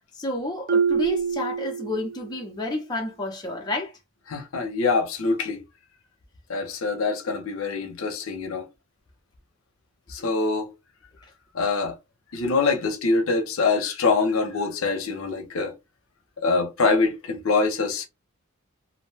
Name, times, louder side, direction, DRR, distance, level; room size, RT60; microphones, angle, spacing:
voice 1, 0.1-3.9, left 2 dB, 20° left, 0.5 m, -30 dB
Marimba xylophone, 0.7-2.4, right 6 dB, 40° right, 0.4 m, -25 dB
voice 2, 4.3-5.6 6.5-8.7 10.1-10.7 11.5-11.9 12.3-15.7 16.4-18.1, left 4 dB, 70° left, 0.6 m, -24 dB
2.5 x 2.1 x 3.2 m
head